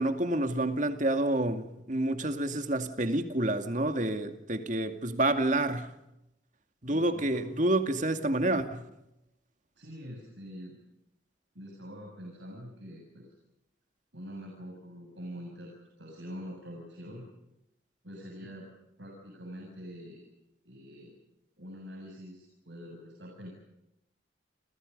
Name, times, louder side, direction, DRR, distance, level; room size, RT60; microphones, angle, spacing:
voice 1, 0.0-5.9 6.8-8.9, right 1 dB, 40° right, 2.3 m, -28 dB
voice 2, 6.9-7.5 9.8-10.8 11.5-13.3 14.1-15.7 16.0-17.2 18.0-18.7 19.0-20.2 20.6-21.1 21.6-23.5, equal, 70° right, 7.4 m, -45 dB
29.5 x 27.5 x 5.4 m
head